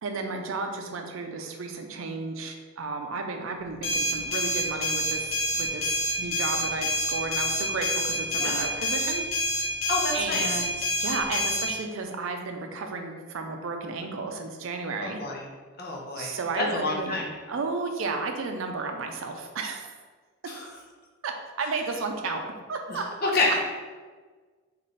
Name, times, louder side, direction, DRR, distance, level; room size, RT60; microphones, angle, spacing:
voice 1, 0.0-9.3 10.1-15.2 16.2-17.2 17.5-19.9 21.2-22.4 22.7-23.3, right 3 dB, 75° right, 4 dB, 0.4 m, -33 dB
sound 1, 3.8-11.7, equal, 85° left, 0.8 m, -27 dB
voice 2, 9.9-10.6 15.0-15.4 15.8-17.3 20.5-20.6 22.9-23.6, left 2 dB, 45° left, -1 dB, 0.6 m, -29 dB
3.2 x 2.5 x 3.9 m, 1.4 s
head